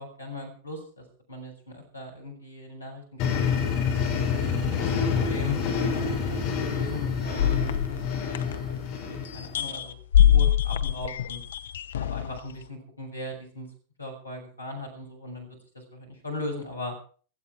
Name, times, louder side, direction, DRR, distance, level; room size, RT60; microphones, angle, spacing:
voice 1, 0.0-3.6 4.3-5.6 5.9-10.0 10.3-11.4 12.0-13.7 14.0-16.9, left 2 dB, 85° left, 2 dB, 6.5 m, -39 dB
sound 1, 3.2-9.6, left 6 dB, 40° left, 5.6 m, -27 dB
sound 2, 7.4-9.0 9.3-12.4, left 10 dB, 65° left, 0.8 m, -23 dB
16.5 x 15.0 x 4.7 m, 0.42 s
figure-of-eight pair, 90°, 0 cm